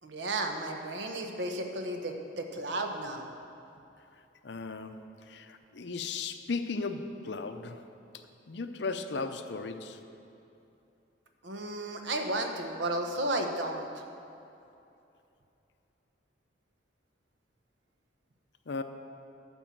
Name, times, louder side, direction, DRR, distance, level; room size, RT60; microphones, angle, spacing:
voice 1, 0.0-3.2 11.4-13.9, right 1 dB, 70° right, 4 dB, 1.0 m, -33 dB
voice 2, 4.4-5.0 5.3-7.8 8.5-10.0 18.7-18.8, left 4 dB, 65° left, 8 dB, 0.6 m, -36 dB
12.0 x 5.5 x 7.5 m, 2.7 s
head